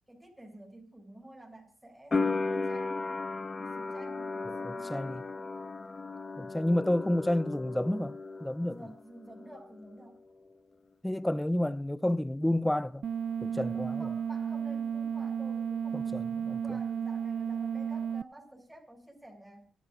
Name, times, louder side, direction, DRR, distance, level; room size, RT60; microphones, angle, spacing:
voice 1, 0.1-3.0 3.6-5.2 8.7-10.2 14.0-19.7, right 1 dB, 10° right, 8.0 m, -51 dB
sound 1, 2.1-8.9 9.2-10.1, left 3 dB, 35° left, 1.6 m, -35 dB
voice 2, 4.5-5.2 6.4-8.9 11.0-13.1 13.4-14.1 15.9-16.8, left 1 dB, 10° left, 0.8 m, -30 dB
sound 2, 13.0-18.2, right 7 dB, 60° right, 0.6 m, -33 dB
26.5 x 12.5 x 2.7 m
supercardioid pair, 55°, 0 cm